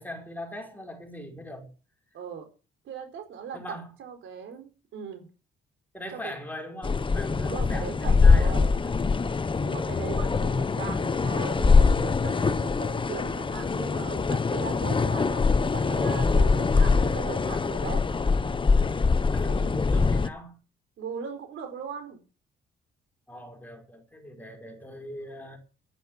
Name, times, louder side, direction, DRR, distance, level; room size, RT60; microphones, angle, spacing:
voice 1, 0.0-1.7 3.5-3.9 5.9-9.0 10.1-10.6 19.3-20.6 23.3-25.6, equal, 10° left, 5.1 m, -41 dB
voice 2, 2.1-2.5 2.8-5.3 6.1-6.3 7.4-8.7 9.6-18.1 21.0-22.2, right 7 dB, 75° right, 4.6 m, -39 dB
sound 1, 6.8-20.3, left 4 dB, 25° left, 0.9 m, -23 dB
11.0 x 10.5 x 7.3 m
cardioid pair, 90°, 20 cm